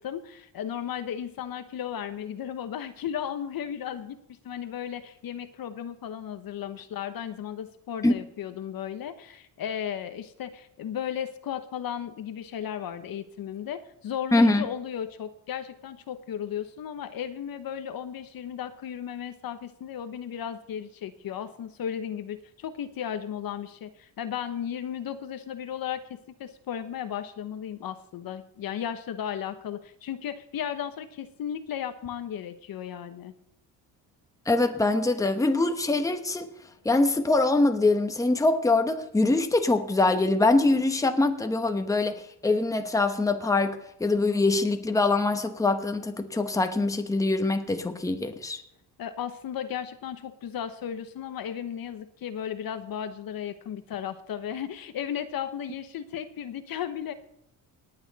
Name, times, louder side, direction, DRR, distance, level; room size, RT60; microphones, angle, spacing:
voice 1, 0.0-33.3 49.0-57.1, left 9 dB, 55° left, 1.1 m, -35 dB
voice 2, 14.3-14.7 34.5-36.5 36.8-42.2 42.4-48.6, left 2 dB, 10° left, 1.0 m, -23 dB
18.5 x 9.0 x 4.1 m
cardioid pair, 130°, 43 cm